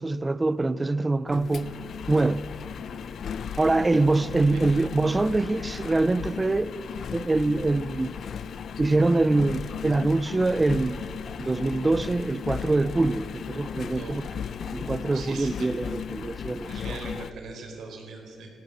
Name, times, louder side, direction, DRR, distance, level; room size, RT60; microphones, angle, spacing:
voice 1, 0.0-1.7 2.1-2.5 3.6-6.7 7.1-8.1 8.8-11.0 11.4-14.3 14.7-17.0, right 2 dB, 20° right, 0.5 m, -24 dB
Engine, 1.3-17.3, left 7 dB, 60° left, 0.6 m, -36 dB
voice 2, 15.1-15.7 16.7-18.5, right 4 dB, 75° right, 4.5 m, -40 dB
21.5 x 16.0 x 7.9 m
cardioid pair, 120°, 0 cm